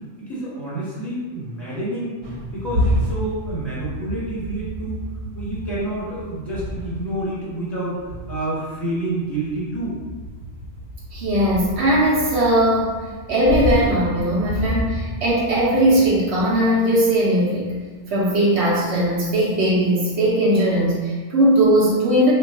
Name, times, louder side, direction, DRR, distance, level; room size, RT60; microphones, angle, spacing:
voice 1, 0.2-2.2 2.5-5.0 5.3-10.0, right 1 dB, ahead, -10 dB, 1.2 m, -28 dB
sound 1, 2.2-17.2 17.6-17.8 18.6-19.2, equal, 85° right, 1.2 m, -30 dB
voice 2, 11.1-12.9 13.3-17.7 18.1-22.3, right 1 dB, 65° right, -5 dB, 1.0 m, -19 dB
3.1 x 2.3 x 3.6 m, 1.4 s
omnidirectional pair, 1.3 m